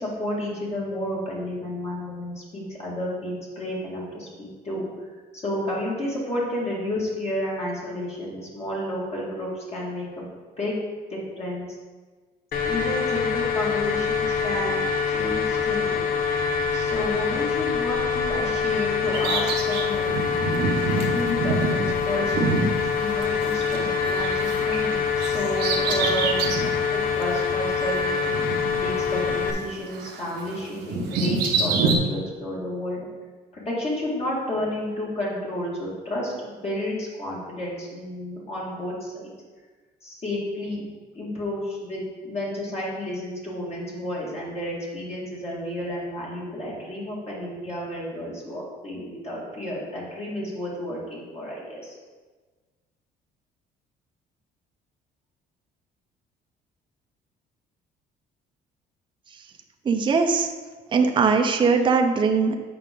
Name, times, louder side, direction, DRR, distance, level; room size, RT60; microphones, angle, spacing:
voice 1, 0.0-10.3 10.6-10.8 11.1-11.8 12.6-16.1 16.7-20.1 21.1-28.1 28.8-33.0 33.5-39.3 40.0-40.8 41.1-52.0, left 1 dB, 40° left, -5 dB, 2.1 m, -31 dB
sound 1, 12.5-29.5, left 6 dB, 55° left, 0.8 m, -25 dB
Bird vocalization bird call bird song, 19.1-23.8 24.0-26.8 27.2-27.3 28.2-29.7 29.9-32.0, right 4 dB, 85° right, 1.0 m, -27 dB
voice 2, 59.8-60.5 60.9-62.5, right 5 dB, 30° right, 4 dB, 0.6 m, -20 dB
8.4 x 5.0 x 3.7 m, 1.4 s
cardioid pair, 110°, 17 cm